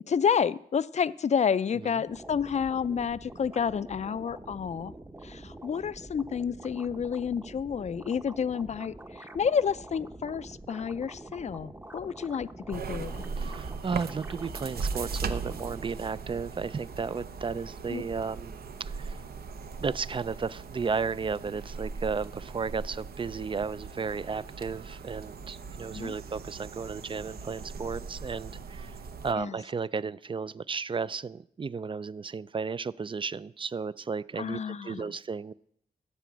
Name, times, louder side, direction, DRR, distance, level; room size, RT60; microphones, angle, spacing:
voice 1, 0.1-4.9 5.2-13.3 17.9-18.0 25.9-26.1 29.4-29.6 34.4-35.1, left 7 dB, 45° left, 17 dB, 0.4 m, -30 dB
sound 1, 2.1-15.9, right 2 dB, 15° right, 0.8 m, -46 dB
sound 2, 12.7-29.3, right 5 dB, 80° right, 0.8 m, -39 dB
voice 2, 13.4-18.5 18.8-19.2 19.8-29.0 29.2-35.5, right 5 dB, 35° right, 18 dB, 0.3 m, -34 dB
13.5 x 4.9 x 8.3 m, 0.72 s
cardioid pair, 70°, 16 cm